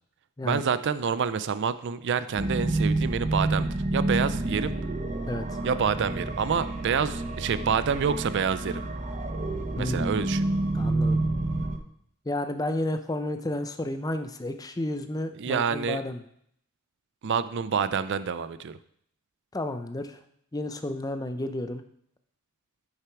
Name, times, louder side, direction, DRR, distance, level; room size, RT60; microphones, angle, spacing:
voice 1, 0.4-4.7 5.6-8.8 9.8-10.5 15.3-16.0 17.2-18.8, right 6 dB, 55° right, 14 dB, 0.4 m, -27 dB
sound 1, 2.4-11.8, right 2 dB, 30° right, 0.8 m, -29 dB
voice 2, 5.3-5.6 9.8-10.1 10.7-11.2 12.3-16.2 19.5-20.2 20.5-21.8, left 1 dB, 15° left, 8 dB, 0.6 m, -31 dB
9.1 x 6.8 x 4.6 m, 0.69 s
head